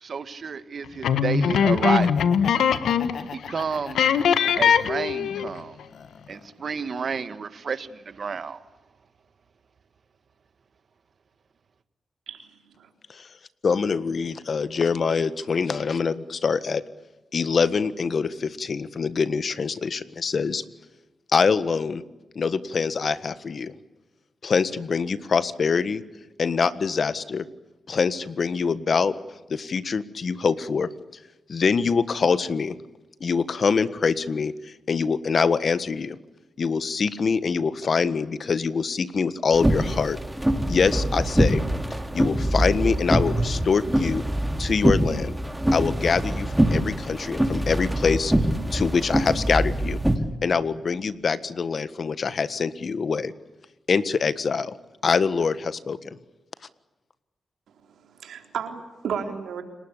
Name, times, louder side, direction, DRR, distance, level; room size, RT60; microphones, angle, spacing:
voice 1, 0.0-2.1 3.3-4.1 4.6-5.8 6.3-8.6, right 5 dB, 60° right, 12 dB, 1.8 m, -30 dB
sound 1, 1.0-3.2 3.5-3.6 4.0-5.6, left 7 dB, 90° left, 1.5 m, -21 dB
Laughter, 1.9-5.0 5.5-6.6, left 6 dB, 70° left, 1.8 m, -40 dB
voice 2, 12.3-12.9 57.9-59.6, right 7 dB, 85° right, 5 dB, 3.9 m, -34 dB
voice 3, 13.6-16.8 17.3-20.6 21.3-22.0 22.3-23.7 24.4-26.0 26.4-27.5 27.9-29.1 29.5-30.9 31.5-32.8 33.2-36.2 36.6-40.2 40.7-41.6 42.1-44.2 44.6-45.4 45.7-48.3 48.7-50.0 50.4-53.3 53.9-54.8 55.0-56.2, left 5 dB, 55° left, 14 dB, 1.5 m, -24 dB
sound 2, 39.5-50.2, right 1 dB, 10° right, 3.2 m, -24 dB
30.0 x 19.5 x 8.4 m, 1.1 s
cardioid pair, 65°, 0 cm